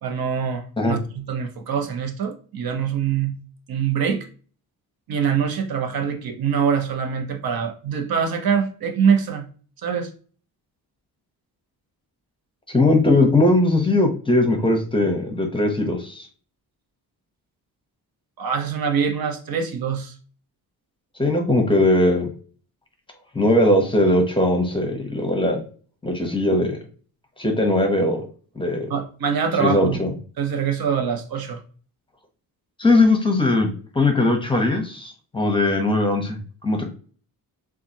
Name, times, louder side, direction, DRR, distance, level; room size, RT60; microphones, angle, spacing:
voice 1, 0.0-3.4 3.7-4.3 5.1-9.5 9.8-10.1 18.4-20.1 28.9-30.0 30.4-31.6, right 7 dB, 70° right, 0.9 m, -24 dB
voice 2, 12.7-16.3 21.2-22.3 23.3-25.6 26.0-26.8 27.4-28.3 28.6-28.9 29.6-30.1 32.8-33.7 33.9-36.9, left 2 dB, 15° left, 0.8 m, -19 dB
7.2 x 2.5 x 2.7 m
wide cardioid pair, 150°, 36 cm